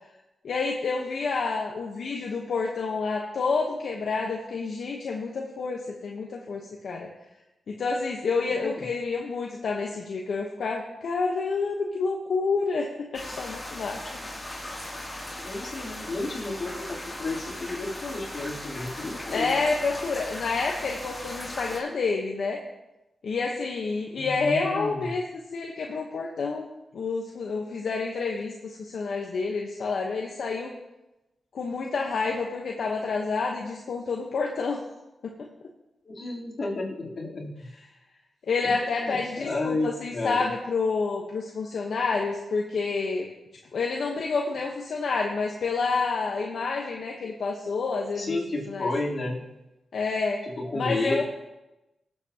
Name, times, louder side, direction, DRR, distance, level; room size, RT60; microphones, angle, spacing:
voice 1, 0.4-7.1 7.7-14.0 19.3-22.6 23.2-26.7 26.9-30.7 31.5-34.9 35.2-35.3 38.4-43.3 43.7-48.4 48.7-48.9 49.9-50.4 50.7-51.2, left 4 dB, 75° left, 0 dB, 1.1 m, -29 dB
sound 1, 13.1-21.8, left 1 dB, 20° left, 2.9 m, -38 dB
voice 2, 15.4-19.6 24.1-25.1 36.1-37.6 38.6-40.4 48.2-49.4 50.4-51.2, left 2 dB, 55° left, -4 dB, 3.5 m, -32 dB
18.5 x 7.9 x 2.9 m, 0.98 s
cardioid pair, 70°, 0 cm